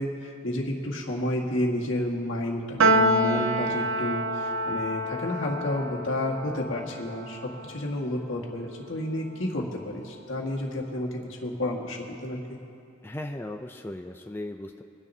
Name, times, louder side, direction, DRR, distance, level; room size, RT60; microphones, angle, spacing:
voice 1, 0.0-7.4 7.7-12.4, left 1 dB, 75° left, -1 dB, 1.8 m, -31 dB
Piano, 2.8-9.3, right 1 dB, 80° right, 0.6 m, -28 dB
voice 2, 13.0-14.8, left 1 dB, 10° left, 4 dB, 0.4 m, -37 dB
23.5 x 10.5 x 2.8 m, 2.7 s
head